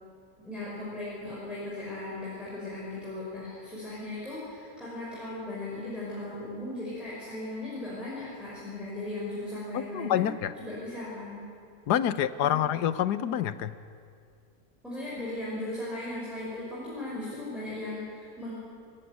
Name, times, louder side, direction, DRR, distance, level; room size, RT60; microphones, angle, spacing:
voice 1, 0.4-10.3 10.6-11.5 12.4-12.6 14.8-18.5, left 1 dB, ahead, -9 dB, 5.8 m, -37 dB
voice 2, 9.7-10.5 11.9-13.7, left 10 dB, 85° left, 14 dB, 1.4 m, -27 dB
25.5 x 14.5 x 9.7 m, 2.3 s
omnidirectional pair, 1.7 m